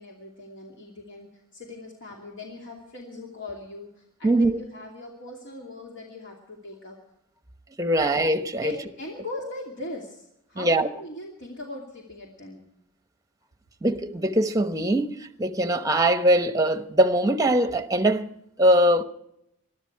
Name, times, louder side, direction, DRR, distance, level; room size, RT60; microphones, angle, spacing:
voice 1, 0.0-7.0 8.6-12.6, left 2 dB, 55° left, 2.7 m, -40 dB
voice 2, 4.2-4.6 7.8-8.7 10.6-10.9 13.8-18.3 18.6-19.0, right 1 dB, 15° right, 1.0 m, -22 dB
22.0 x 13.0 x 4.7 m
head